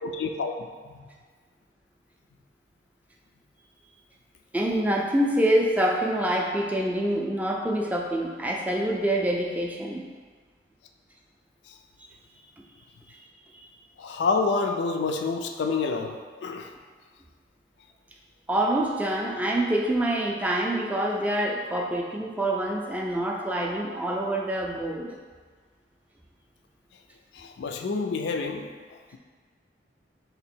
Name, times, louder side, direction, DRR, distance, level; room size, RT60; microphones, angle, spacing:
voice 1, 0.0-0.5 0.9-1.0 11.7-11.8 14.0-16.7 27.3-28.7, left 4 dB, 75° left, 4 dB, 0.3 m, -28 dB
voice 2, 4.5-10.0 13.5-13.7 18.5-25.2, right 1 dB, 10° right, 0 dB, 0.3 m, -26 dB
3.4 x 2.9 x 4.3 m, 1.5 s
head